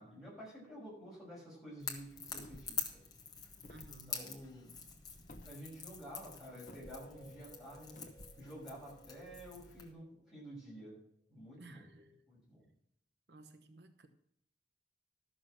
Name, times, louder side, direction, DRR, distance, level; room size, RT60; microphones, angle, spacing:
voice 1, 0.0-3.0 4.1-4.7 5.4-8.0 8.4-10.9 11.3-11.9 12.3-12.7, equal, ahead, -7 dB, 6.1 m, -50 dB
Crackle / Crack, 1.8-9.9, left 6 dB, 25° left, 1.5 m, -46 dB
sound 1, 2.3-2.8 3.6-4.0 5.3-5.5 6.7-7.0 8.0-8.4, left 1 dB, 50° left, 0.9 m, -53 dB
voice 2, 3.7-4.2 11.6-12.2 13.3-14.1, right 2 dB, 75° right, 8 dB, 0.9 m, -56 dB
sound 2, 6.3-10.9, right 3 dB, 40° right, 4.9 m, -60 dB
13.0 x 6.6 x 6.3 m, 0.72 s
head